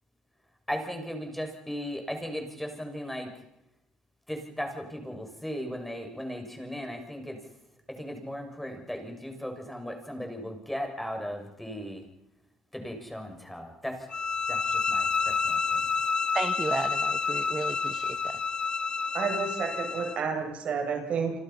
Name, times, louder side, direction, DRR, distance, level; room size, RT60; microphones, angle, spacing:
voice 1, 0.7-3.3 4.3-7.4 7.9-12.0 12.7-14.1 14.5-15.8, equal, 5° left, 4 dB, 6.6 m, -37 dB
sound 1, 14.1-20.2, left 5 dB, 35° left, 2.3 m, -29 dB
voice 2, 16.3-18.4, right 3 dB, 20° right, 9 dB, 1.6 m, -33 dB
voice 3, 19.1-21.3, right 6 dB, 60° right, 4 dB, 7.8 m, -30 dB
29.0 x 25.5 x 5.8 m, 0.83 s
supercardioid pair, 85°, 3 cm